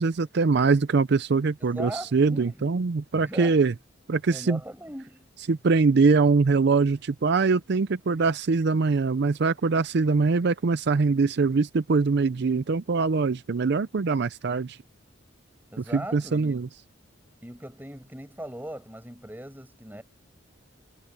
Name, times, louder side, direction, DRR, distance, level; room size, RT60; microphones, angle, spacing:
voice 1, 0.0-3.7 4.1-4.6 5.5-14.8 15.8-16.7, right 4 dB, 55° right, 0.5 m, -23 dB
voice 2, 1.6-2.6 3.1-3.6 4.3-5.3 15.7-16.5 17.4-20.0, right 1 dB, 10° right, 6.5 m, -39 dB
head